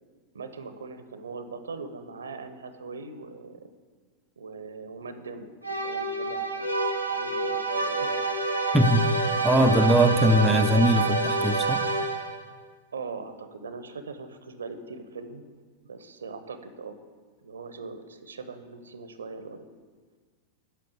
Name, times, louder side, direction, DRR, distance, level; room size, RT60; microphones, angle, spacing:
voice 1, 0.3-3.7 4.4-5.5 5.8-6.8 7.1-8.2 12.9-15.4 15.8-17.0 17.4-19.7, right 4 dB, 70° right, 10 dB, 0.8 m, -40 dB
sound 1, 5.6-12.5, right 3 dB, 90° left, 1.0 m, -27 dB
voice 2, 8.7-9.0 9.4-11.8, equal, 5° right, 4 dB, 0.6 m, -21 dB
9.2 x 6.5 x 8.0 m, 1.5 s
figure-of-eight pair, 90°, 0 cm